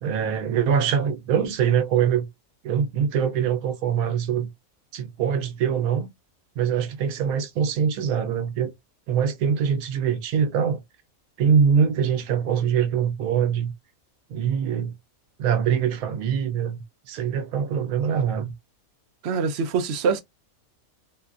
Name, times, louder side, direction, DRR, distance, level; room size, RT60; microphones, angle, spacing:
voice 1, 0.0-2.3 2.6-4.5 4.9-6.1 6.6-8.7 9.1-10.8 11.4-13.7 14.3-14.9 15.4-18.5, right 7 dB, 80° right, 1.0 m, -23 dB
voice 2, 19.2-20.2, right 5 dB, 60° right, 0.7 m, -24 dB
2.8 x 2.4 x 2.3 m
omnidirectional pair, 1.5 m